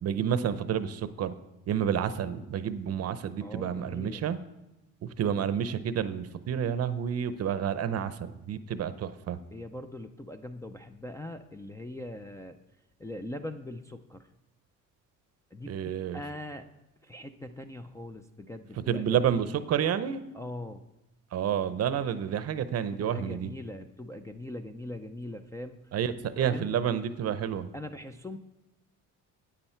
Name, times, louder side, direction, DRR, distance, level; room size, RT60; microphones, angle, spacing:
voice 1, 0.0-1.3 1.7-4.4 5.0-9.4 15.7-16.2 18.9-20.2 21.3-23.5 25.9-27.7, right 8 dB, 45° right, 13 dB, 0.7 m, -29 dB
voice 2, 3.4-4.2 9.5-12.6 13.0-14.3 15.5-16.7 17.0-19.1 20.3-20.8 22.9-25.8 26.4-26.7 27.7-28.4, left 1 dB, 10° left, 3 dB, 0.4 m, -41 dB
10.0 x 8.9 x 4.4 m, 0.97 s
cardioid pair, 120°, 33 cm